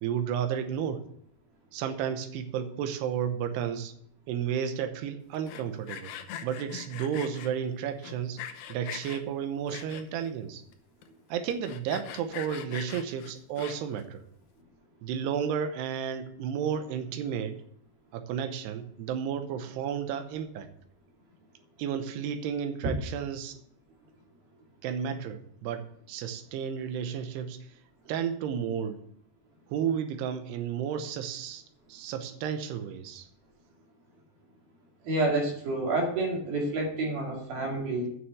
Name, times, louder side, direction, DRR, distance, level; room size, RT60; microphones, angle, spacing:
voice 1, 0.0-1.0 1.7-3.9 4.3-6.1 6.4-8.4 8.7-10.6 11.3-14.2 15.0-17.6 18.1-20.7 21.8-23.6 24.8-27.6 28.1-29.0 29.7-31.6 31.9-33.3, right 8 dB, 85° right, 7 dB, 2.9 m, -32 dB
Sawing, 5.3-7.5 8.0-9.2 9.7-10.3 10.7-10.8 11.0-11.1 11.5-14.0, left 10 dB, 80° left, 2.8 m, -41 dB
voice 2, 35.0-38.1, right 2 dB, 65° right, -1 dB, 4.0 m, -29 dB
9.4 x 6.3 x 7.9 m, 0.66 s
omnidirectional pair, 4.8 m